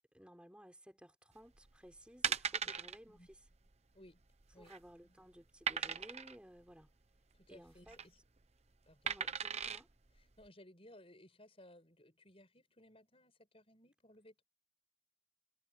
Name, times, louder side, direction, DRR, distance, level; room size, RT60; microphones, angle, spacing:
voice 1, 0.1-3.4 4.6-6.9 7.5-8.0 9.1-9.9, equal, 5° right, 4.4 m, -57 dB
sound 1, 1.6-1.8 2.2-3.0 3.3-3.5 3.7-3.8 4.4-4.9 5.7-6.3 7.7-8.0 9.1-9.8 10.4-10.5, right 7 dB, 30° right, 0.9 m, -38 dB
voice 2, 7.3-8.2 8.8-9.1 10.4-14.4, left 1 dB, 25° left, 6.9 m, -60 dB
head